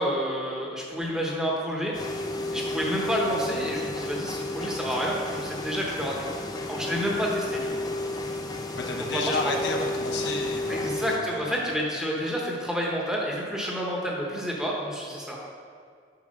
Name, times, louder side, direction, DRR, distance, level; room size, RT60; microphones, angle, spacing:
voice 1, 0.0-1.9 2.5-7.7 9.1-9.5 10.7-15.4, equal, 5° right, -3 dB, 1.0 m, -29 dB
sound 1, 1.9-11.2, left 2 dB, 20° left, 0.5 m, -32 dB
voice 2, 8.8-11.5, left 2 dB, 80° left, 2 dB, 0.9 m, -32 dB
6.7 x 4.7 x 5.3 m, 2.1 s
head